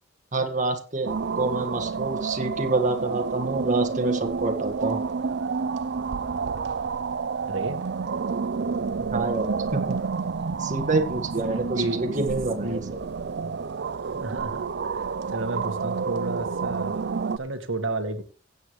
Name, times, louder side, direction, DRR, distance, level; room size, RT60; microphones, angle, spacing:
voice 1, 0.3-5.0 9.1-10.0 10.6-12.8, right 3 dB, 40° right, 4 dB, 1.8 m, -27 dB
sound 1, 1.0-17.4, right 5 dB, 60° right, 0.5 m, -29 dB
voice 2, 7.5-7.8 11.4-12.0 12.6-12.9 14.1-17.1 17.4-18.2, right 2 dB, 85° right, 7 dB, 1.7 m, -32 dB
16.0 x 8.5 x 3.2 m, 0.36 s
head